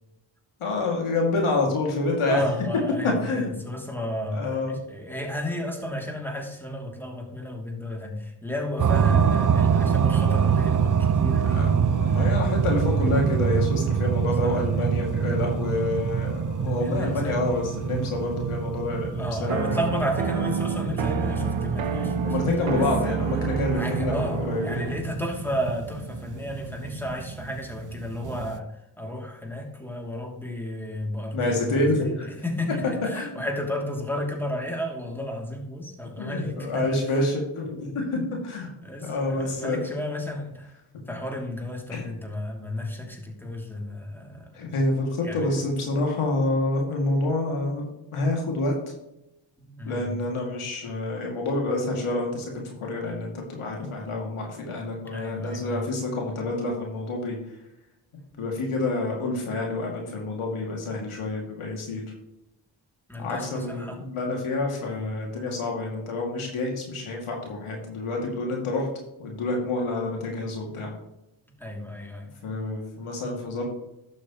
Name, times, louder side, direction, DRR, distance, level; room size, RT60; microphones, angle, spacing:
voice 1, 0.6-2.4 3.0-3.5 4.3-4.8 11.5-19.8 22.0-24.8 31.3-32.3 33.1-33.4 36.2-38.7 39.0-39.8 41.9-42.0 44.5-47.9 48.1-48.9 49.8-57.4 58.4-62.0 63.2-68.9 69.2-70.9 72.4-73.7, left 2 dB, 85° left, 0 dB, 2.4 m, -28 dB
voice 2, 2.3-12.3 14.4-14.6 16.8-17.4 19.1-23.2 23.7-31.9 32.2-37.0 38.8-40.8 41.1-44.5 45.2-45.5 49.6-50.1 55.1-55.8 58.3-58.6 63.1-64.0 64.8-65.0 70.6-70.9 71.5-72.3, left 1 dB, 5° left, 1 dB, 2.6 m, -33 dB
sound 1, 8.8-28.6, right 7 dB, 40° right, 0.6 m, -26 dB
sound 2, 11.4-20.2, left 2 dB, 60° left, 3.1 m, -46 dB
sound 3, 19.5-25.1, right 6 dB, 70° right, 1.0 m, -28 dB
11.5 x 6.5 x 3.0 m, 0.91 s
cardioid pair, 50°, 49 cm